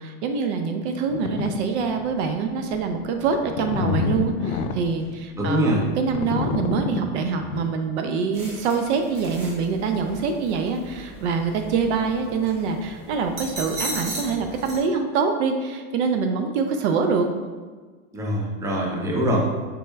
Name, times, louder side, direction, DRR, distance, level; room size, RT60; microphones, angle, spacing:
voice 1, 0.0-17.3, right 5 dB, 55° right, 5 dB, 0.6 m, -25 dB
sound 1, 1.1-1.5 2.0-2.2 2.7-7.7, left 5 dB, 80° left, 0.6 m, -28 dB
voice 2, 5.4-5.8 18.1-19.4, equal, 10° right, -2 dB, 0.6 m, -23 dB
sound 2, 8.3-14.8, right 1 dB, 35° right, 1.2 m, -37 dB
5.3 x 4.2 x 2.2 m, 1.4 s
hypercardioid pair, 120°, 40 cm